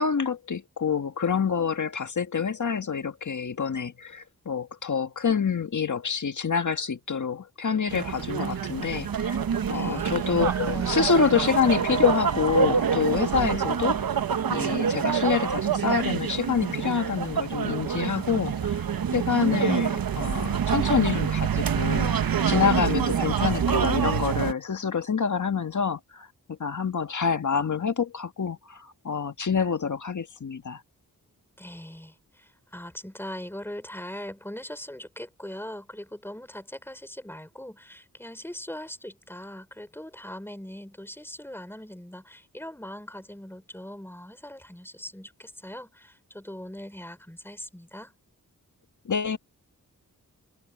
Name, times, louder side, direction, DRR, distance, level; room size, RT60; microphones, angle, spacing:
voice 1, 0.0-9.4 9.7-14.2 14.5-18.9 19.1-22.2 22.5-30.8 49.1-49.4, left 6 dB, 55° left, 1.7 m, -27 dB
sound 1, 7.9-24.5, right 7 dB, 75° right, 1.1 m, -26 dB
sound 2, 9.3-13.1, right 3 dB, 50° right, 5.6 m, -40 dB
voice 2, 9.7-10.4 31.6-48.1, left 1 dB, 5° left, 4.4 m, -41 dB
wide cardioid pair, 85°, 35 cm